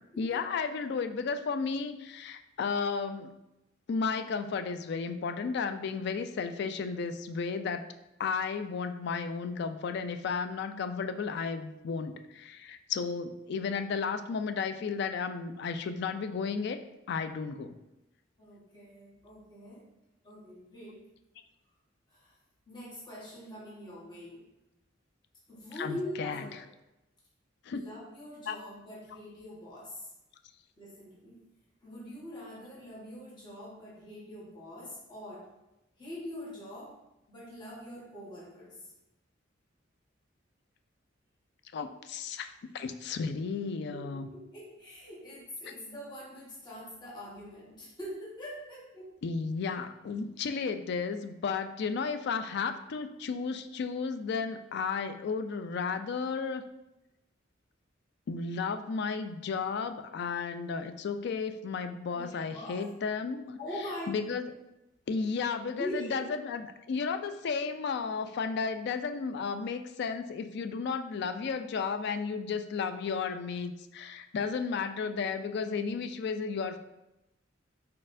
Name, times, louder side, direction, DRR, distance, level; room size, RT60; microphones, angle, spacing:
voice 1, 0.2-3.3 3.9-7.9 8.2-16.8 17.1-17.8 25.8-26.5 27.7-27.8 28.5-28.6 41.7-44.3 49.2-56.7 58.3-63.6 64.1-64.5 65.1-76.8, left 5 dB, 60° left, 9 dB, 0.3 m, -33 dB
voice 2, 18.4-19.8 20.2-21.0 22.1-22.3 22.7-24.4 25.5-26.7 27.7-30.1 30.8-31.4 31.8-35.5 36.0-37.0 37.3-38.8 43.9-49.1 62.1-62.9 63.6-64.2 65.8-66.3, left 1 dB, 25° left, -8 dB, 1.3 m, -43 dB
4.2 x 4.2 x 2.6 m, 0.94 s
head